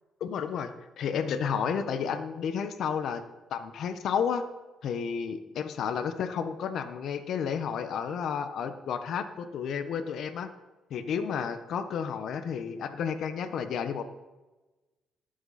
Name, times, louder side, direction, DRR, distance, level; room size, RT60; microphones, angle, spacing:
voice 1, 0.2-3.2 3.5-4.4 4.8-10.5 10.9-14.0, left 7 dB, 70° left, 9 dB, 1.2 m, -31 dB
19.5 x 7.9 x 4.3 m, 1.1 s
cardioid pair, 90°, 0 cm